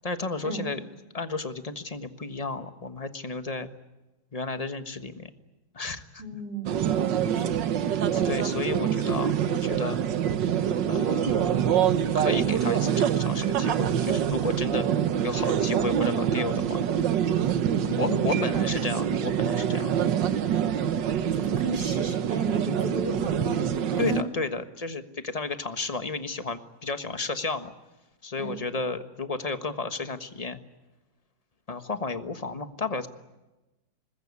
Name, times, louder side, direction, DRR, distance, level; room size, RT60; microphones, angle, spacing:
voice 1, 0.0-0.8 1.1-3.7 4.3-5.3 5.7-6.2 8.1-10.0 10.9-11.8 12.1-14.9 15.2-16.8 18.0-20.1 21.4-21.6 24.0-27.7 28.2-30.6 31.7-33.1, left 3 dB, 25° left, 9 dB, 1.3 m, -32 dB
voice 2, 6.2-6.7 7.3-7.5 17.8-18.7 21.2-24.3 28.4-28.5, right 2 dB, 70° right, 3 dB, 4.1 m, -33 dB
sound 1, 6.7-24.2, right 9 dB, 90° right, 1.7 m, -25 dB
25.5 x 21.0 x 9.7 m, 1.1 s
omnidirectional pair, 1.9 m